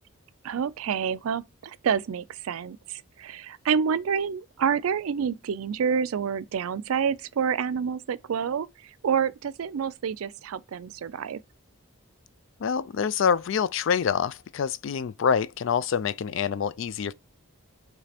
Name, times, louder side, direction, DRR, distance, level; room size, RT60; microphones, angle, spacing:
voice 1, 0.4-8.7 9.0-11.4, right 7 dB, 80° right, 0.4 m, -28 dB
voice 2, 12.6-17.1, left 7 dB, 60° left, 0.3 m, -26 dB
5.0 x 3.3 x 2.8 m
head